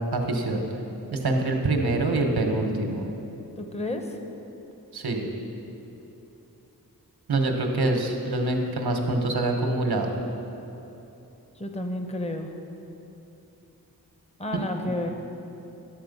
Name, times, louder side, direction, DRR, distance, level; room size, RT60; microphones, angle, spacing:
voice 1, 0.1-0.6 1.1-3.1 4.9-5.3 7.3-10.1 14.5-14.6, right 2 dB, 90° right, 3 dB, 1.2 m, -25 dB
voice 2, 3.6-4.2 11.6-12.5 14.4-15.1, left 1 dB, 15° left, 5 dB, 0.8 m, -31 dB
11.5 x 7.7 x 5.3 m, 2.9 s
wide cardioid pair, 70°, 37 cm